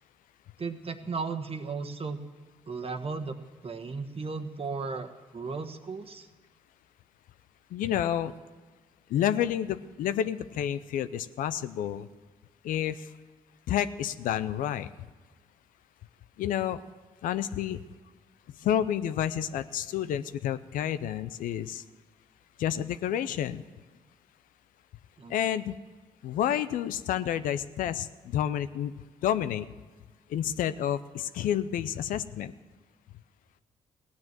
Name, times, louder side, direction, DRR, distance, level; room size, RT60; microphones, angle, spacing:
voice 1, 0.6-2.2 2.7-3.4 3.6-6.3 25.2-25.3, right 4 dB, 45° right, 7 dB, 1.3 m, -35 dB
voice 2, 7.7-8.3 9.1-12.1 12.6-13.1 13.7-14.9 16.4-16.8 17.2-17.8 18.6-21.8 22.6-23.6 25.3-25.7 26.2-28.9 29.2-29.7 30.3-32.5, left 10 dB, 75° left, 13 dB, 0.6 m, -29 dB
16.0 x 9.6 x 7.5 m, 1.3 s
supercardioid pair, 50°, 14 cm